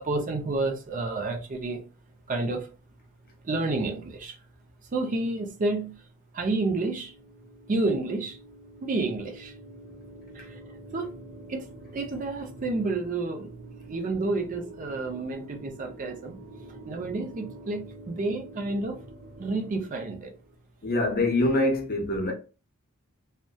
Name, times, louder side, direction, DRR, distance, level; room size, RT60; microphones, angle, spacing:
voice 1, 0.0-1.8 2.3-2.7 3.4-4.4 4.9-6.0 6.3-7.1 7.7-8.4 8.8-9.5 10.3-11.1 11.5-13.5 13.9-16.4 16.9-19.0 19.4-20.3, right 2 dB, 40° right, 0.4 m, -30 dB
sound 1, 6.9-20.6, right 2 dB, 80° right, 0.6 m, -47 dB
voice 2, 20.8-22.3, left 2 dB, 45° left, 0.6 m, -24 dB
2.7 x 2.1 x 2.2 m
head